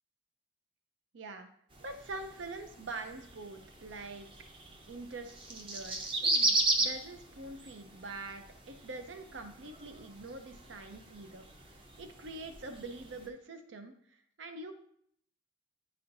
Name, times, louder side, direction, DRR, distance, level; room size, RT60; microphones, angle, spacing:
voice 1, 1.1-1.5 1.8-4.3 4.9-14.7, right 3 dB, 80° right, 7 dB, 0.6 m, -45 dB
sound 1, 1.7-13.3, right 2 dB, 25° right, 0.6 m, -37 dB
9.4 x 4.2 x 2.6 m, 0.65 s
head